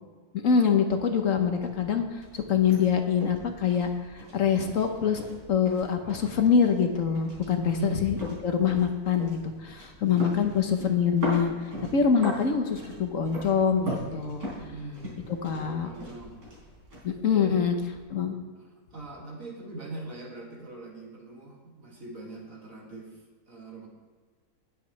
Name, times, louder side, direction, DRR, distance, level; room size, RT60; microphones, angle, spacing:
voice 1, 0.3-5.2 5.5-11.5 11.9-14.5 15.4-15.9 17.0-17.7 18.1-18.4, left 7 dB, 60° left, 6 dB, 1.2 m, -25 dB
sound 1, 1.0-18.0, left 1 dB, 75° right, 4.6 m, -40 dB
voice 2, 7.6-8.0 10.0-10.3 14.7-16.4 17.3-17.7 18.6-23.9, right 2 dB, 60° right, -2 dB, 2.7 m, -41 dB
19.0 x 8.2 x 3.2 m, 1.5 s
omnidirectional pair, 1.6 m